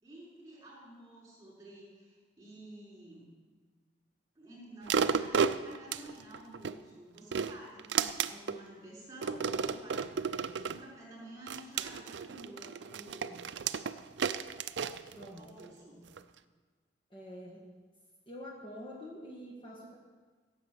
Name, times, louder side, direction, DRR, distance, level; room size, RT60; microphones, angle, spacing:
voice 1, 0.0-3.3 4.3-13.4 15.3-16.0, right 1 dB, 20° right, -5 dB, 5.1 m, -51 dB
sound 1, 4.9-6.8 7.2-8.6 9.2-10.8 11.5-15.7 16.2-16.3, right 6 dB, 75° right, 0.5 m, -33 dB
voice 2, 15.1-15.5 17.1-17.7 18.3-20.0, equal, 30° left, -3 dB, 1.7 m, -46 dB
16.0 x 7.2 x 7.9 m, 1.5 s
head